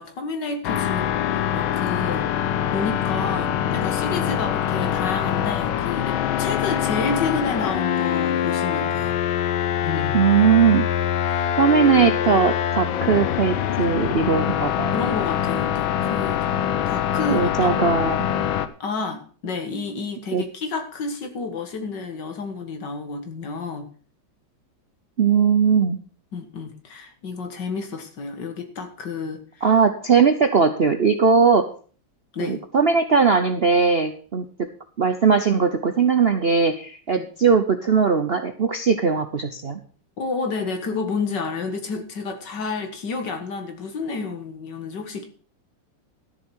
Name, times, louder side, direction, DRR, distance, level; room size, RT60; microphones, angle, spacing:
voice 1, 0.0-9.2 9.8-10.2 11.3-11.5 14.9-17.8 18.8-23.9 26.3-29.7 32.3-32.6 37.2-37.3 40.2-45.2, left 4 dB, 65° left, 6 dB, 2.3 m, -30 dB
sound 1, 0.6-18.7, left 10 dB, 85° left, 1.6 m, -24 dB
voice 2, 10.1-10.8 11.6-14.9 17.3-18.3 20.3-20.4 25.2-26.0 29.6-31.7 32.4-34.4 35.0-39.8, right 5 dB, 50° right, 7 dB, 0.7 m, -19 dB
13.0 x 7.1 x 6.2 m, 0.42 s
omnidirectional pair, 2.1 m